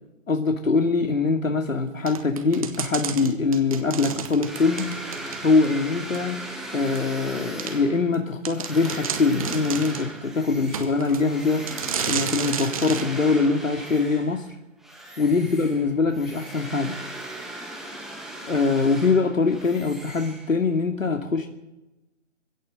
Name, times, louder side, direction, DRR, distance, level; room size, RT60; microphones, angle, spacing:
voice 1, 0.3-4.9 5.4-6.4 6.7-11.7 12.1-14.5 15.2-16.9 18.5-21.5, left 4 dB, 90° left, 4 dB, 2.7 m, -23 dB
sound 1, 2.1-5.7 6.1-6.2 6.9-7.0 7.6-7.7 8.1-8.2 8.4-10.1 10.7-11.2 11.7-13.1, right 7 dB, 25° right, 1.9 m, -31 dB
sound 2, 4.4-14.5 14.8-20.8, right 1 dB, ahead, 1.8 m, -38 dB
21.0 x 16.5 x 7.9 m, 0.99 s
hypercardioid pair, 165°, 38 cm